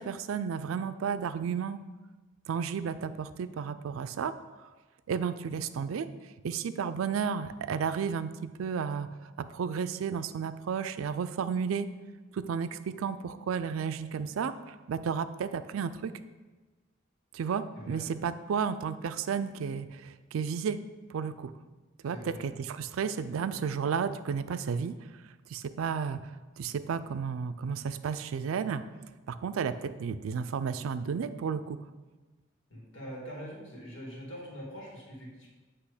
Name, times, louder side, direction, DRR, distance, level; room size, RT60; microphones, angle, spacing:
voice 1, 0.0-1.8 2.5-4.3 4.6-4.7 5.1-6.1 6.4-9.1 9.4-11.9 12.3-16.1 17.3-20.8 21.1-21.5 22.0-24.9 25.5-26.2 26.6-28.8 29.3-31.8, right 6 dB, 85° right, 12 dB, 0.4 m, -32 dB
voice 2, 22.1-22.4 32.7-35.5, equal, 65° left, -3 dB, 2.0 m, -43 dB
8.2 x 3.0 x 4.9 m, 1.2 s
head